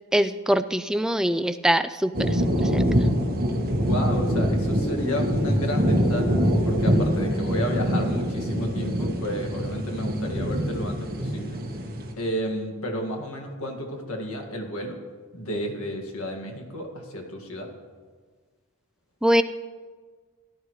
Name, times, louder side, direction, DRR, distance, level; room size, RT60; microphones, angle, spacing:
voice 1, 0.1-2.9 19.2-19.4, equal, 5° right, 11 dB, 0.3 m, -23 dB
sound 1, 2.1-12.1, equal, 45° right, 1.7 m, -24 dB
voice 2, 3.7-11.6 12.2-15.0 15.3-17.7, equal, 70° left, 2 dB, 2.0 m, -32 dB
17.5 x 11.0 x 3.2 m, 1.5 s
head